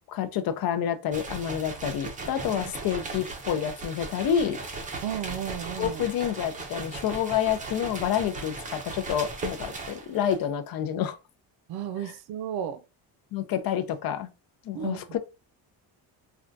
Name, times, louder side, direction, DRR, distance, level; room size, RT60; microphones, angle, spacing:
voice 1, 0.1-4.6 5.8-11.2 12.0-12.1 13.3-14.3 14.6-15.2, left 9 dB, 60° left, 0.5 m, -28 dB
sound 1, 1.1-10.5, right 3 dB, 20° right, 0.5 m, -37 dB
voice 2, 5.0-6.0 11.7-12.8 14.7-15.0, right 9 dB, 65° right, 0.5 m, -33 dB
3.4 x 2.3 x 2.6 m
cardioid pair, 150°, 41 cm